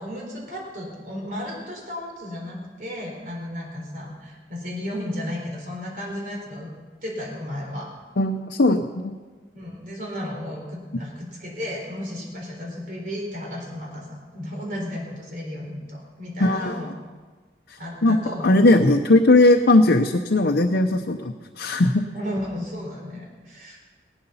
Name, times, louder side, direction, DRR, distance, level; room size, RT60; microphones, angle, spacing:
voice 1, 0.0-6.7 7.0-7.9 9.5-16.9 17.8-18.6 22.1-23.9, left 1 dB, 50° right, -1 dB, 4.1 m, -34 dB
voice 2, 8.2-9.1 16.4-16.8 17.7-18.2 18.4-22.0, left 2 dB, 75° left, 3 dB, 0.8 m, -18 dB
17.5 x 12.0 x 5.6 m, 1.4 s
head